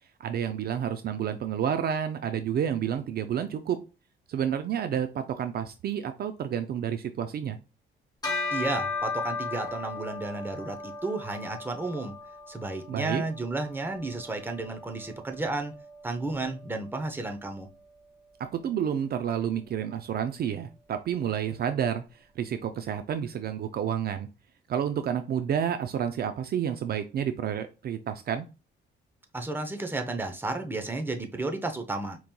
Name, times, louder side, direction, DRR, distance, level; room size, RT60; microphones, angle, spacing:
voice 1, 0.2-3.8 4.3-7.6 12.9-13.2 18.4-22.0 22.4-24.3 24.7-28.5, right 9 dB, 50° right, 0.4 m, -30 dB
Bell, 8.2-17.9, left 3 dB, 20° left, 2.0 m, -37 dB
voice 2, 8.5-12.2 12.5-15.7 16.0-17.7 29.3-32.2, right 2 dB, 10° right, 0.7 m, -32 dB
5.1 x 3.0 x 2.2 m
cardioid pair, 90°, 20 cm